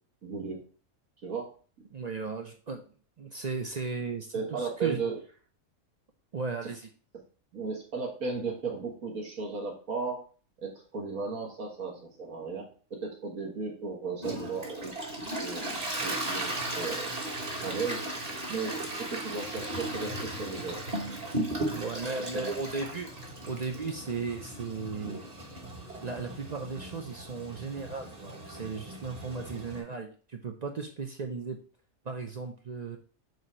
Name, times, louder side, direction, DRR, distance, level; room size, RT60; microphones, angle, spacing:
voice 1, 0.2-0.6 1.2-1.5 4.3-5.2 7.5-10.2 10.6-14.9 15.3-17.1 17.6-18.1 18.5-20.9 21.8-22.5, right 4 dB, 75° right, -1 dB, 1.9 m, -35 dB
voice 2, 1.9-2.9 3.2-5.0 6.3-6.9 21.7-23.1 23.5-25.2 26.0-31.6 32.0-33.0, right 4 dB, 50° right, 4 dB, 0.5 m, -36 dB
Toilet flush, 14.2-29.8, right 1 dB, 30° right, 1.2 m, -37 dB
7.9 x 2.7 x 4.3 m, 0.40 s
omnidirectional pair, 1.5 m